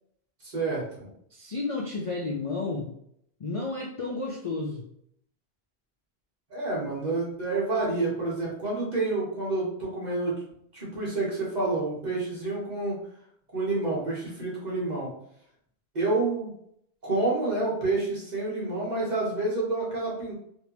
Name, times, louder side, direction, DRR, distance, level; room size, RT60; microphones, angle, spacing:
voice 1, 0.4-1.1 6.5-10.3 10.7-13.0 13.5-15.1 15.9-16.5 17.0-20.3, right 2 dB, 40° right, -6 dB, 1.3 m, -28 dB
voice 2, 1.3-2.9 3.4-4.8, left 3 dB, 55° left, 0 dB, 0.4 m, -32 dB
3.2 x 2.7 x 3.0 m, 0.70 s
omnidirectional pair, 1.1 m